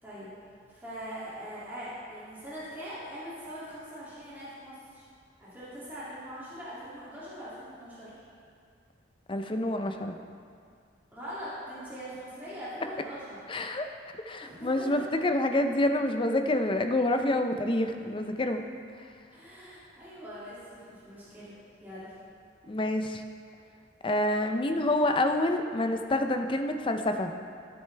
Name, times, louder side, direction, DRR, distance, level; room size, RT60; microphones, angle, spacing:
voice 1, 0.7-5.1 5.4-8.2 11.1-13.5 14.4-15.0 19.3-21.5 21.8-22.1, equal, 10° right, -11 dB, 2.5 m, -42 dB
voice 2, 9.3-10.2 13.5-13.9 14.3-18.6 22.7-23.2 24.0-27.3, left 1 dB, 25° left, 6 dB, 0.5 m, -27 dB
13.5 x 7.9 x 3.3 m, 2.3 s
head